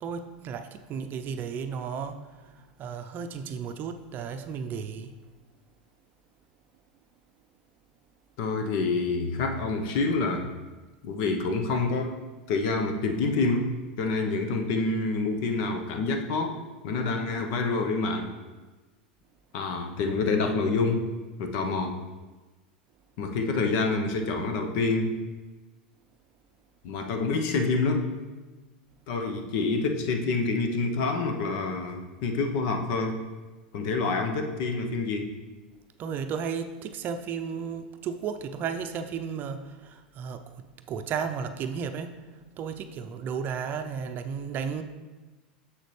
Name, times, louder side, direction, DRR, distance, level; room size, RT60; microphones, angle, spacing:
voice 1, 0.0-5.1 36.0-42.2 42.6-44.8, right 6 dB, 40° right, 8 dB, 0.6 m, -34 dB
voice 2, 8.4-10.5 11.0-12.2 12.5-16.5 16.8-18.3 19.5-21.1 21.4-22.0 23.2-25.2 26.8-28.1 29.1-33.2 33.7-35.3, left 3 dB, 60° left, 5 dB, 0.9 m, -27 dB
7.3 x 6.5 x 3.2 m, 1.2 s
hypercardioid pair, 100°, 5 cm